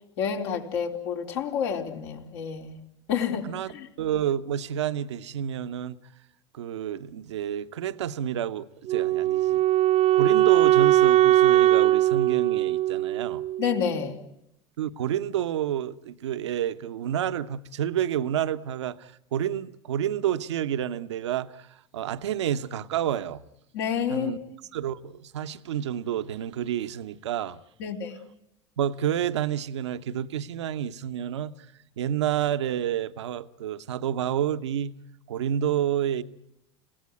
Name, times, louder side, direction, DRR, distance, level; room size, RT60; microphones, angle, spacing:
voice 1, 0.2-2.8 3.1-3.5 3.7-3.9 13.6-14.2 23.7-24.3 27.8-28.1, left 7 dB, 70° left, 4.2 m, -29 dB
voice 2, 4.0-6.0 6.5-9.6 10.1-13.4 14.8-21.7 21.9-23.4 24.1-24.4 24.7-27.6 28.8-31.5 32.0-34.9 35.3-36.2, right 10 dB, 80° right, 1.0 m, -29 dB
Wind instrument woodwind instrument, 8.9-13.9, right 14 dB, 45° right, 1.0 m, -20 dB
30.0 x 17.0 x 9.5 m
hypercardioid pair, 80°, 15 cm